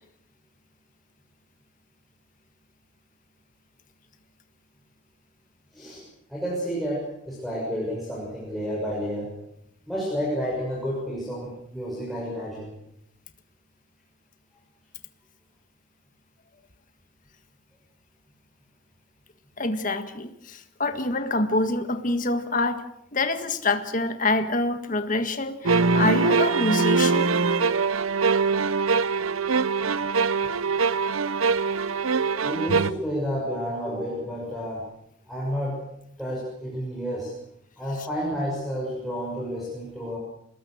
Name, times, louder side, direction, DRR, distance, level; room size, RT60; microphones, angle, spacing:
voice 1, 6.3-9.3 9.9-12.7 32.4-34.8 35.3-35.8 36.2-37.3 37.8-40.2, equal, ahead, -6 dB, 6.6 m, -30 dB
voice 2, 19.6-22.8 23.1-27.4, left 2 dB, 40° left, 8 dB, 1.7 m, -26 dB
sound 1, 25.7-32.9, right 4 dB, 90° right, 0.8 m, -23 dB
25.5 x 20.5 x 6.6 m, 0.77 s
head